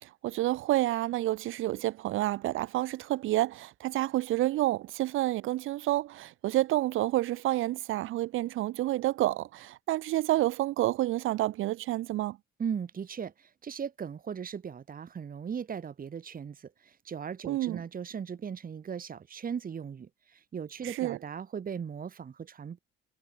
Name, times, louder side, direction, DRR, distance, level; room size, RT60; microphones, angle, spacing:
voice 1, 0.0-12.4 17.4-17.8 20.8-21.2, right 16 dB, 90° right, 4.1 m, -29 dB
voice 2, 12.6-22.8, right 7 dB, 45° right, 2.6 m, -38 dB
cardioid pair, 90°, 20 cm